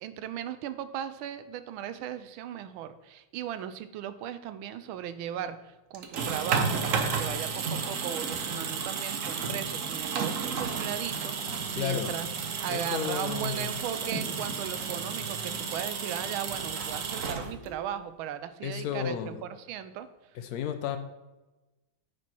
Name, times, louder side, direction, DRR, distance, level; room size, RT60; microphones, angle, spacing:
voice 1, 0.0-12.3 12.6-20.1, right 10 dB, 80° right, 12 dB, 1.3 m, -37 dB
sound 1, 5.9-17.9, right 5 dB, 65° right, 0.8 m, -32 dB
Fire, 11.1-16.6, right 1 dB, 50° right, 2.8 m, -45 dB
voice 2, 11.7-12.1 12.7-13.7 18.6-19.4 20.4-21.0, left 9 dB, 80° left, 8 dB, 0.8 m, -32 dB
9.4 x 4.6 x 4.4 m, 1.1 s
omnidirectional pair, 2.3 m